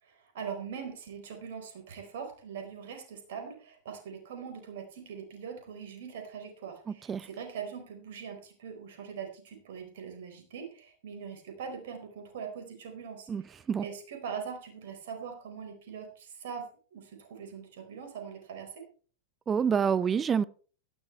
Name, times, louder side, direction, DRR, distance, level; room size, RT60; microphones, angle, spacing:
voice 1, 0.0-18.8, right 6 dB, 55° right, 4.5 m, -42 dB
voice 2, 19.5-20.4, right 7 dB, 20° right, 0.6 m, -26 dB
16.5 x 14.0 x 3.3 m
figure-of-eight pair, 90°, 0 cm